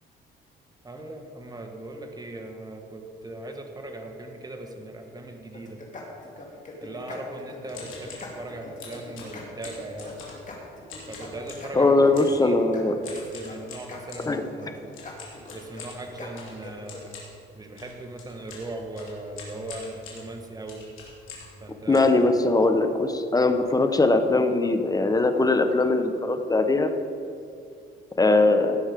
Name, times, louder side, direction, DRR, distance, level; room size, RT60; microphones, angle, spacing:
voice 1, 0.8-5.8 6.8-10.2 11.1-12.6 13.0-15.0 15.5-17.1 17.5-20.8 21.6-22.1, right 2 dB, 20° right, 3 dB, 1.4 m, -39 dB
sound 1, 5.5-17.0, left 2 dB, 40° left, 2.3 m, -42 dB
sound 2, 7.7-8.3 8.8-10.5 10.9-11.7 12.1-12.4 13.0-14.3 14.9-21.6 21.9-22.8 23.3-23.4 23.5-23.8 24.1-24.3 24.9-25.0 25.2-25.5, left 4 dB, 80° left, 3.1 m, -44 dB
voice 2, 11.7-12.9 14.3-14.4 21.9-26.9 28.2-28.8, left 2 dB, 20° left, 7 dB, 1.0 m, -21 dB
17.5 x 6.3 x 5.2 m, 2.4 s
cardioid pair, 90°, 20 cm